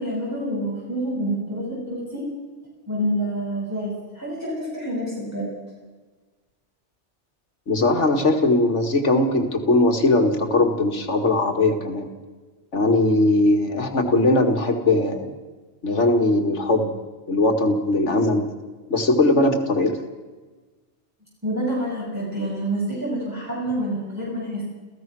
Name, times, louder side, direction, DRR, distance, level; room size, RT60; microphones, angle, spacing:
voice 1, 0.0-2.3 2.9-5.5 21.4-24.6, right 1 dB, 15° right, -6 dB, 7.0 m, -27 dB
voice 2, 7.7-12.1 12.7-15.3 15.8-16.9 17.3-18.5 18.9-20.0, left 2 dB, 80° left, 5 dB, 2.4 m, -20 dB
28.5 x 16.0 x 6.2 m, 1.3 s
omnidirectional pair, 1.2 m